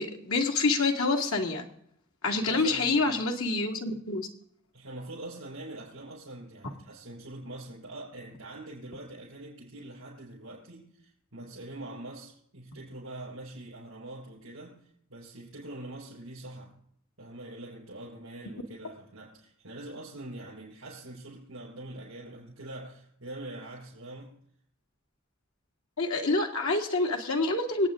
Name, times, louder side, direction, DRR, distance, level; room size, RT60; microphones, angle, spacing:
voice 1, 0.0-1.7 2.2-4.3 26.0-27.9, left 3 dB, 85° left, 2.1 m, -27 dB
voice 2, 2.5-3.2 4.7-14.8 15.1-16.7 17.2-24.3, right 1 dB, 75° right, 5.9 m, -44 dB
25.5 x 8.9 x 3.7 m
head